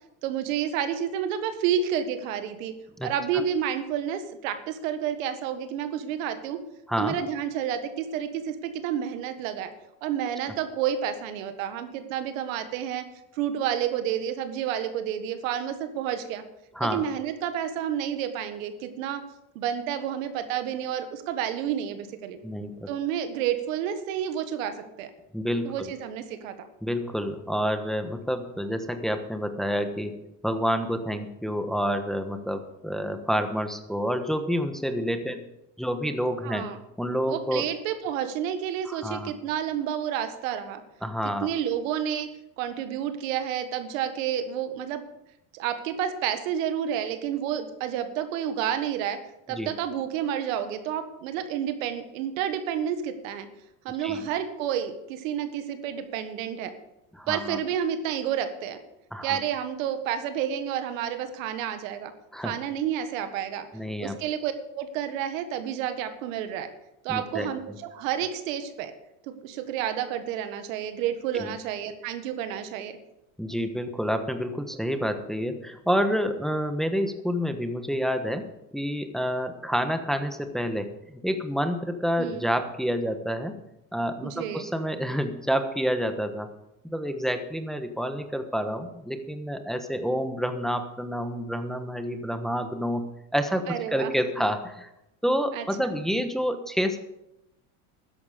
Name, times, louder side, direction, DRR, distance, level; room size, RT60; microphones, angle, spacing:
voice 1, 0.2-2.7 3.0-6.6 7.0-9.7 10.0-13.0 13.3-16.4 16.8-19.2 19.5-22.4 22.9-25.1 25.6-26.7 36.4-36.8 37.3-40.8 41.4-42.3 42.6-45.0 45.5-49.2 49.5-53.5 53.8-56.7 57.3-58.8 59.2-62.1 62.4-63.7 64.0-66.7 67.0-68.9 69.3-73.0 82.2-82.4 84.2-84.7 93.7-94.1 95.5-95.6, right 9 dB, 80° right, 9 dB, 1.6 m, -30 dB
voice 2, 22.4-22.9 25.3-25.9 26.8-30.2 30.4-35.5 35.8-36.7 37.0-37.6 38.9-39.3 41.0-41.5 49.6-49.7 54.0-54.2 57.2-57.6 59.1-59.4 62.3-62.5 63.7-64.2 67.1-67.5 71.3-71.5 73.4-83.6 83.9-86.5 86.8-94.9 95.2-97.0, equal, ahead, 7 dB, 1.3 m, -28 dB
13.0 x 10.5 x 5.1 m, 0.86 s
supercardioid pair, 100°, 39 cm